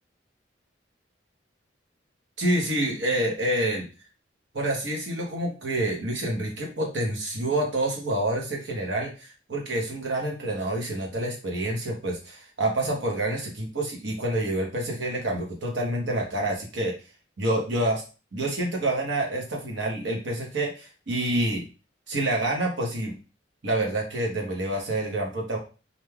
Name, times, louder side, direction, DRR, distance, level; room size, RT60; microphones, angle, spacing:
voice 1, 2.4-3.9 4.5-16.9 17.4-18.0 18.3-21.7 22.1-23.2 23.6-25.6, right 1 dB, 70° right, 0 dB, 0.9 m, -27 dB
3.2 x 2.6 x 2.2 m, 0.33 s
head